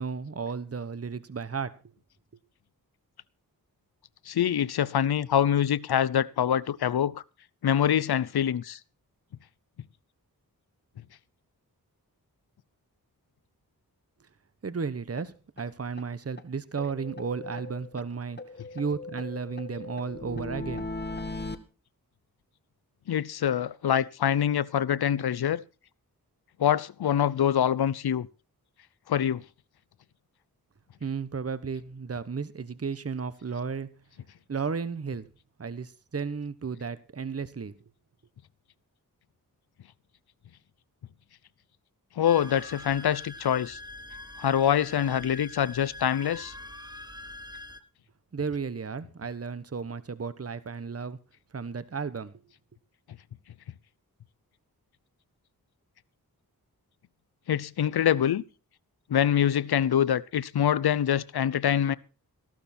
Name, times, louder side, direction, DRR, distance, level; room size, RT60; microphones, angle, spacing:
voice 1, 0.0-1.7 14.6-18.4 18.7-20.9 31.0-33.9 34.5-35.3 35.6-37.7 48.3-51.2 51.5-52.3, right 5 dB, 40° right, 1.1 m, -33 dB
voice 2, 4.3-7.2 7.6-8.8 23.1-25.6 26.6-28.3 29.1-29.4 42.2-43.8 44.4-46.5 57.5-58.4 59.1-62.0, left 9 dB, 80° left, 0.7 m, -25 dB
sound 1, 15.2-15.3 15.6-15.7 16.0-16.1 16.4-16.5 16.8-18.1 18.4-21.6, left 2 dB, 25° left, 1.5 m, -38 dB
sound 2, 42.2-47.8, left 2 dB, 10° right, 1.4 m, -44 dB
14.5 x 12.5 x 4.3 m
cardioid pair, 50°, 38 cm